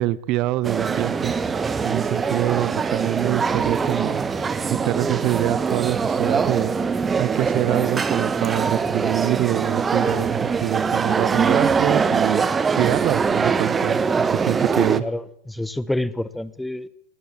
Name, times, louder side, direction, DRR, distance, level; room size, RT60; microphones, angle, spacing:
voice 1, 0.0-1.3 1.8-4.2 4.8-6.7 7.2-12.4 12.7-14.0 14.3-15.0, right 17 dB, 40° right, 0.9 m, -25 dB
sound 1, 0.6-15.0, right 5 dB, 15° right, 1.4 m, -23 dB
voice 2, 14.7-16.9, left 1 dB, 5° left, 1.1 m, -28 dB
22.5 x 18.5 x 8.8 m
figure-of-eight pair, 90°, 0 cm